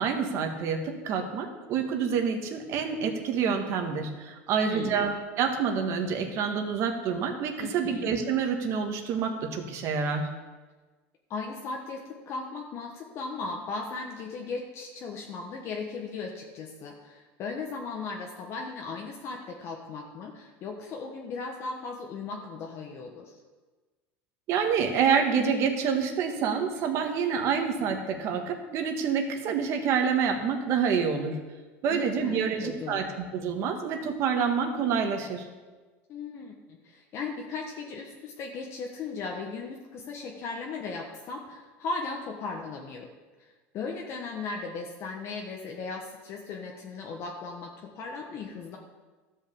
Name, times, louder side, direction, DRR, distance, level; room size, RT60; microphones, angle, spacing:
voice 1, 0.0-10.3 24.5-31.3 31.8-33.0 33.3-35.4, right 6 dB, 50° right, 4 dB, 1.6 m, -27 dB
voice 2, 4.6-5.1 7.6-8.1 11.3-23.4 31.9-33.2 36.1-43.1 43.4-48.8, left 4 dB, 45° left, 0 dB, 1.3 m, -37 dB
13.5 x 5.6 x 7.0 m, 1.3 s
supercardioid pair, 130°, 6 cm